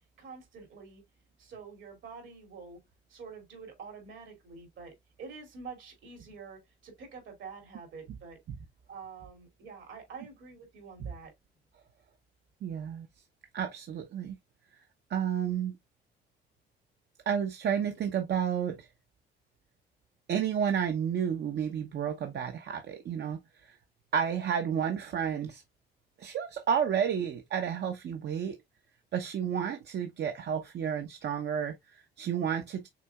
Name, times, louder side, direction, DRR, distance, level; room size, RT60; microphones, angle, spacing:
voice 1, 0.2-1.0 1.4-2.8 3.1-8.4 8.9-11.3, right 5 dB, 75° right, 2.6 m, -47 dB
voice 2, 12.6-13.1 13.5-14.4 15.1-15.8 17.3-18.9 20.3-23.7 24.1-25.6 26.2-28.6 29.1-32.9, right 8 dB, 60° right, 0.8 m, -31 dB
6.0 x 3.4 x 2.3 m
cardioid pair, 90°, 20 cm